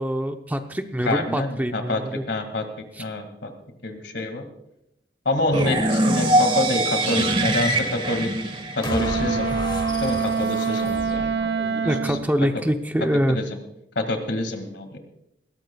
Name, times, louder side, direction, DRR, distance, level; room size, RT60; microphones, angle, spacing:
voice 1, 0.0-2.2 2.9-3.0 11.8-13.4, equal, 10° right, 6 dB, 0.7 m, -25 dB
voice 2, 1.1-2.0 2.3-2.6 3.0-3.5 3.8-4.4 5.3-8.3 8.8-9.6 10.0-11.3 11.6-11.8 12.1-12.2 13.3-13.6 14.0-15.0, left 2 dB, 75° left, 6 dB, 2.1 m, -27 dB
sound 1, 5.5-9.5, right 1 dB, 30° right, 1.5 m, -23 dB
sound 2, 8.8-12.2, left 1 dB, 25° left, 1.2 m, -33 dB
Wind instrument woodwind instrument, 8.8-12.3, right 5 dB, 70° right, 0.5 m, -25 dB
20.5 x 17.0 x 2.3 m, 0.81 s
head